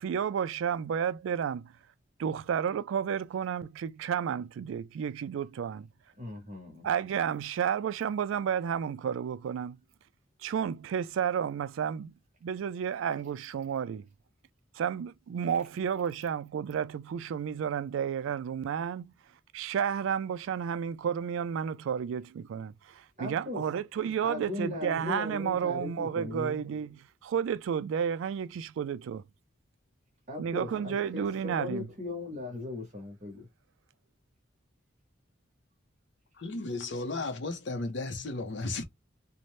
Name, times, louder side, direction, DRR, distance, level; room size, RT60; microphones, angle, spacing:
voice 1, 0.0-1.7 2.2-5.9 6.8-9.8 10.4-12.1 12.4-14.1 14.8-19.1 19.5-29.2 30.4-31.9, right 8 dB, 75° right, 0.3 m, -31 dB
voice 2, 6.2-6.9 23.2-23.7 24.2-26.6 30.3-33.5, left 2 dB, 35° right, 0.9 m, -38 dB
voice 3, 36.4-38.8, left 2 dB, 60° left, 0.6 m, -34 dB
2.6 x 2.1 x 3.0 m
head